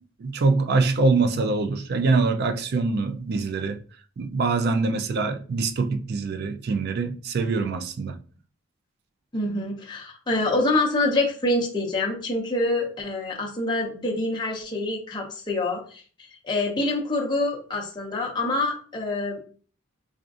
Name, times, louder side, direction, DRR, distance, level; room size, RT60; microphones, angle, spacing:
voice 1, 0.2-3.8 4.2-8.2, right 3 dB, 50° right, 0.3 m, -24 dB
voice 2, 9.3-16.0 16.4-19.4, left 2 dB, 20° left, 0.6 m, -26 dB
4.8 x 2.4 x 2.4 m
head